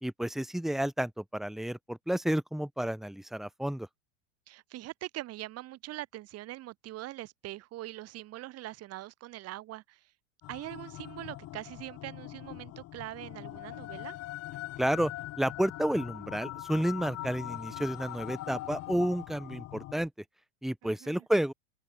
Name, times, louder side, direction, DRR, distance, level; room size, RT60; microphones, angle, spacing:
voice 1, 0.0-3.9 14.8-15.1 15.4-20.1 20.6-21.5, right 1 dB, ahead, 1.1 m, -31 dB
voice 2, 4.5-10.0 10.5-14.2 20.8-21.2, right 16 dB, 40° right, 2.0 m, -42 dB
sound 1, 10.4-19.9, left 16 dB, 40° left, 1.9 m, -42 dB
open air
hypercardioid pair, 105°, 38 cm